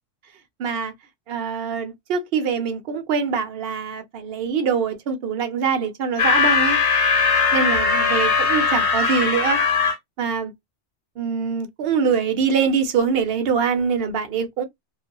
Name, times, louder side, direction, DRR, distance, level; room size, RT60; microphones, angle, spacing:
voice 1, 0.6-0.9 1.3-6.8 7.5-9.9 10.2-10.5 11.2-14.6, right 6 dB, 60° right, 0.8 m, -24 dB
sound 1, 6.2-10.0, left 5 dB, 65° left, 1.1 m, -19 dB
2.6 x 2.4 x 2.2 m
omnidirectional pair, 1.3 m